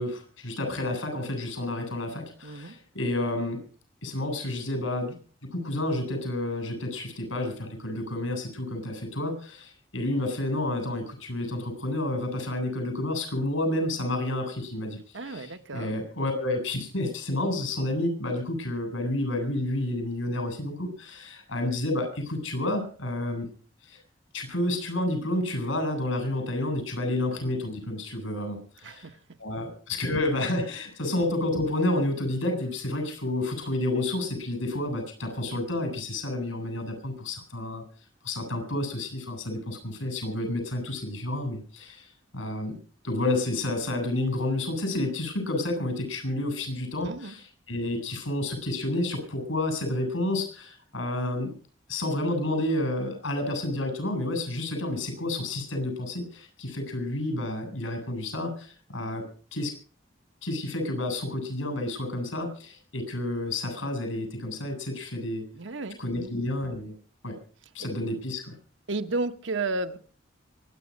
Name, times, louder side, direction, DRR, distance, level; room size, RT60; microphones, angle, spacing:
voice 1, 0.0-3.6 4.0-5.2 5.5-23.5 23.8-24.0 24.3-29.1 29.4-37.8 38.2-42.8 43.0-51.5 51.9-59.2 59.5-59.7 60.4-65.4 66.0-66.9 67.2-67.4 67.7-68.6, left 1 dB, 90° left, 7.7 m, -30 dB
voice 2, 2.4-2.8 15.1-15.9 28.8-29.2 47.0-47.3 65.5-66.3 68.9-70.0, right 3 dB, 75° right, 1.2 m, -33 dB
24.5 x 9.8 x 5.3 m
head